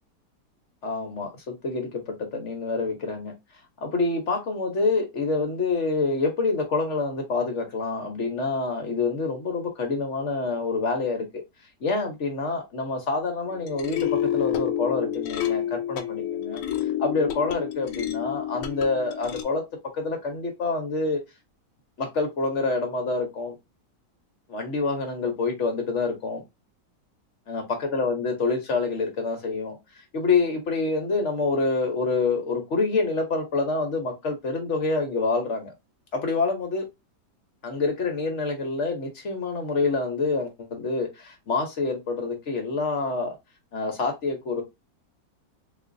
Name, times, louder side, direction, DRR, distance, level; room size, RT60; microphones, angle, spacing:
voice 1, 0.8-3.3 3.8-11.4 11.8-16.6 17.0-19.6 19.9-21.2 22.0-23.5 24.5-26.4 27.5-35.7 36.1-36.9 37.6-43.3 43.7-44.6, left 3 dB, 55° left, 0.9 m, -27 dB
sound 1, 13.5-19.4, left 11 dB, 80° left, 1.2 m, -29 dB
3.8 x 2.6 x 2.5 m
omnidirectional pair, 1.9 m